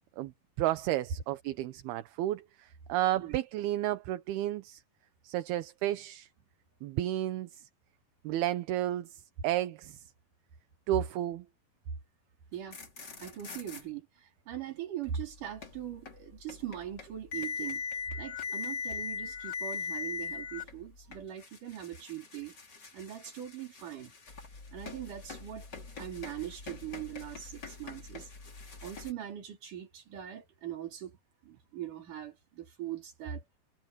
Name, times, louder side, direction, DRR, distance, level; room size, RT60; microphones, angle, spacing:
voice 1, 0.6-4.8 5.2-6.3 6.8-7.6 8.2-10.0 10.9-11.5, right 14 dB, 75° right, 2.8 m, -32 dB
sound 1, 12.5-13.8 15.0-29.1, left 5 dB, 25° left, 3.1 m, -41 dB
voice 2, 13.2-17.8 18.2-22.6 22.9-24.1 24.7-25.7 26.0-28.3 28.8-31.2 31.4-33.4, right 10 dB, 50° right, 4.6 m, -41 dB
omnidirectional pair, 4.9 m